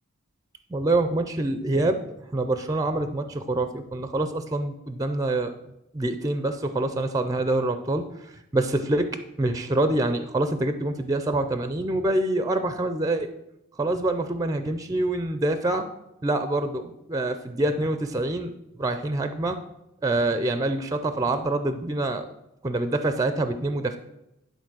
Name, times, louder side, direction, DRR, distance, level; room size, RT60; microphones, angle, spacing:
voice 1, 0.7-5.5 5.9-9.1 9.4-13.3 13.8-15.9 16.2-19.6 20.0-22.3 22.6-24.0, right 2 dB, 15° right, 9 dB, 0.5 m, -26 dB
11.0 x 4.1 x 6.1 m, 0.85 s
head